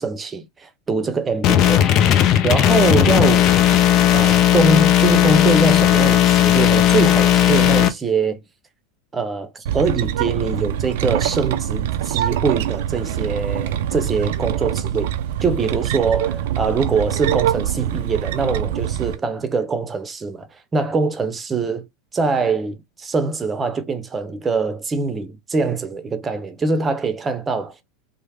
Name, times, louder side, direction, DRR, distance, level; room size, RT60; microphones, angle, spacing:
voice 1, 0.0-2.1 2.4-3.5 4.1-8.4 9.1-15.1 15.4-21.9 22.1-27.8, right 4 dB, 20° right, 0.7 m, -23 dB
sound 1, 1.4-7.9, left 11 dB, 45° left, 0.5 m, -15 dB
sound 2, 9.7-19.2, right 10 dB, 70° right, 0.4 m, -24 dB
3.2 x 2.1 x 3.2 m
hypercardioid pair, 95°, 0 cm